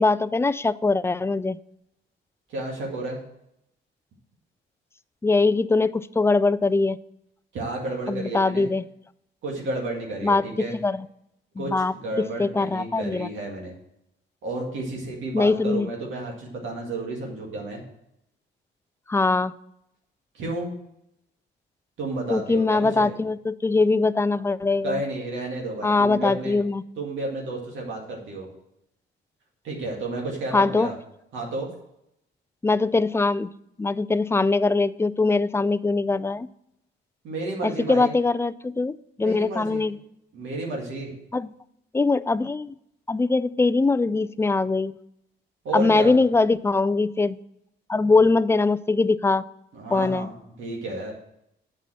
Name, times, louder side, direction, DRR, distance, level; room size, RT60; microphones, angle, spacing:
voice 1, 0.0-1.6 5.2-7.0 8.1-8.8 10.2-11.0 11.6-13.3 15.3-15.9 19.1-19.5 22.3-25.0 25.8-26.8 30.5-30.9 32.6-33.5 33.8-36.5 37.6-40.0 41.3-41.5 41.9-42.7 43.1-44.9 45.7-47.4 47.9-49.4 49.9-50.3, left 3 dB, 15° left, 17 dB, 0.3 m, -22 dB
voice 2, 2.5-3.2 7.5-8.7 9.4-10.8 11.6-13.7 14.4-17.8 20.3-20.7 22.0-23.1 24.8-26.6 27.0-28.5 29.6-30.9 31.3-31.7 37.2-38.1 39.2-39.9 40.3-41.1 45.6-46.1 49.7-51.1, right 2 dB, 75° right, -2 dB, 2.1 m, -31 dB
7.4 x 5.5 x 7.4 m, 0.80 s
cardioid pair, 90°, 20 cm